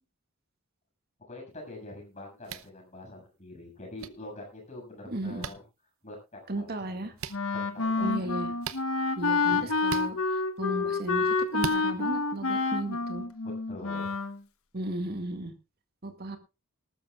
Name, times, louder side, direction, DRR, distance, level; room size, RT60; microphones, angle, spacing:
voice 1, 1.3-5.6 6.0-6.2 6.5-7.1 7.5-8.3 9.5-9.7 13.4-14.1, left 2 dB, 35° left, 1 dB, 7.0 m, -45 dB
sound 1, 2.4-2.7 4.0-4.1 5.4-5.5 7.2-7.4 8.6-8.8 9.8-10.1 11.6-11.8, right 6 dB, 75° right, 0.8 m, -36 dB
voice 2, 5.1-5.5 6.5-7.1 8.0-8.5 9.2-10.2 10.6-13.2 14.7-15.5 16.0-16.4, right 1 dB, 45° right, 6 dB, 2.1 m, -35 dB
Wind instrument woodwind instrument, 7.3-14.4, left 3 dB, 85° left, 1.3 m, -28 dB
19.5 x 13.0 x 2.4 m, 0.27 s
head